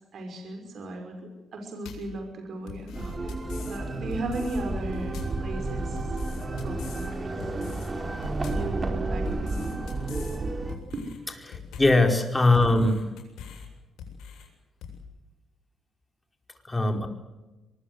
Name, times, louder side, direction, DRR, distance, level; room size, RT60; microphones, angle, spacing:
voice 1, 0.1-3.0 3.7-6.1 6.6-7.5 8.5-9.7 10.9-11.0 12.5-12.6, right 2 dB, 60° right, 4 dB, 5.9 m, -36 dB
sound 1, 1.8-2.2 2.7-3.8 4.1-4.6 4.9-5.4 6.0-7.1 7.4-7.9 8.2-8.7 9.2-10.4 10.7-11.2 11.5-12.0 12.5-13.7 14.0-14.5 14.8-15.0, left 7 dB, 85° left, 7.8 m, -42 dB
sound 2, 2.9-10.8, right 2 dB, 30° right, 4.6 m, -31 dB
voice 2, 11.5-13.0 16.6-17.1, left 2 dB, 15° left, 4 dB, 4.9 m, -21 dB
23.5 x 21.0 x 8.2 m, 1.1 s
cardioid pair, 90°, 0 cm